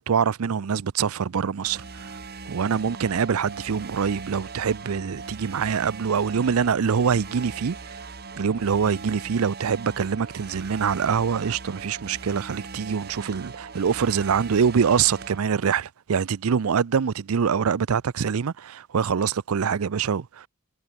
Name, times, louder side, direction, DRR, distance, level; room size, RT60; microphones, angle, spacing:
voice 1, 0.0-2.1 2.5-7.9 8.4-20.5, right 6 dB, 70° right, 0.5 m, -24 dB
sound 1, 1.6-15.4, right 4 dB, 45° right, 1.8 m, -40 dB
head